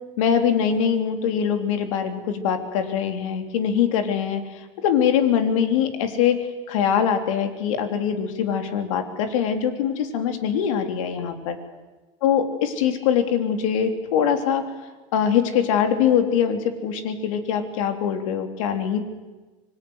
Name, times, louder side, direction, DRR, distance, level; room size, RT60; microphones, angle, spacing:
voice 1, 0.2-11.6 12.2-14.7 15.1-19.0, left 8 dB, 85° left, 6 dB, 3.4 m, -23 dB
25.5 x 20.0 x 9.7 m, 1.2 s
supercardioid pair, 125°, 16 cm